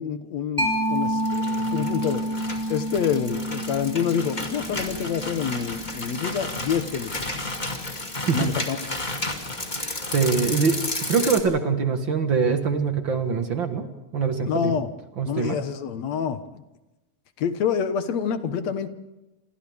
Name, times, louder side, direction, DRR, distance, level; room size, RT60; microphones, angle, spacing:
voice 1, 0.0-2.2 2.7-7.3 8.3-8.9 14.5-14.9 15.3-16.6 17.4-18.9, left 7 dB, 70° left, 9 dB, 2.4 m, -27 dB
Mallet percussion, 0.6-7.8, right 1 dB, 5° right, 5.8 m, -30 dB
sound 1, 0.9-11.4, left 2 dB, 15° left, 2.3 m, -32 dB
voice 2, 10.1-13.9 14.1-14.7 15.2-15.6, right 5 dB, 45° right, 6 dB, 2.0 m, -23 dB
28.5 x 26.5 x 3.6 m, 1.0 s
omnidirectional pair, 3.3 m